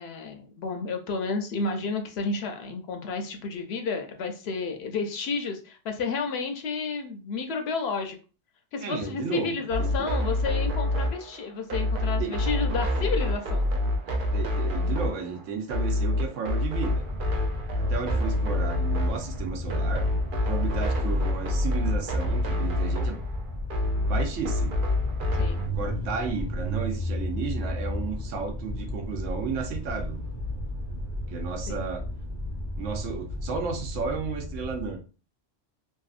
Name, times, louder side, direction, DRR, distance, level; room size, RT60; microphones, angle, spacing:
voice 1, 0.0-8.2 8.7-13.7 25.4-25.6 31.7-31.8, left 4 dB, 65° left, 4 dB, 0.7 m, -31 dB
voice 2, 8.8-10.1 12.2-12.3 14.1-17.1 17.8-20.1 20.4-23.2 24.1-24.8 25.7-30.2 31.3-32.0 32.8-35.0, right 5 dB, 90° right, 4 dB, 1.0 m, -33 dB
sound 1, 9.7-25.7, left 1 dB, 60° right, 0.6 m, -27 dB
sound 2, 16.6-35.0, left 1 dB, 25° right, 0.8 m, -34 dB
2.7 x 2.4 x 2.4 m, 0.35 s
omnidirectional pair, 1.2 m